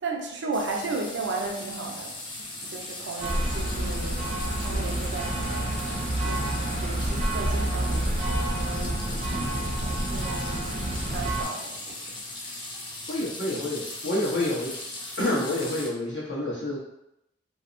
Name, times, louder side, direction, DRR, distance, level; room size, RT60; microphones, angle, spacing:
voice 1, 0.0-2.1 2.6-4.3 4.6-9.0 9.8-10.7 11.1-12.0, right 3 dB, 85° right, 0 dB, 0.5 m, -35 dB
sound 1, 0.5-15.9, left 2 dB, 30° left, 0.5 m, -38 dB
sound 2, 3.2-11.4, right 1 dB, 40° right, 0.4 m, -28 dB
voice 2, 13.1-14.7 15.2-16.8, left 1 dB, 80° left, -7 dB, 1.0 m, -28 dB
2.7 x 2.1 x 2.5 m, 0.83 s
head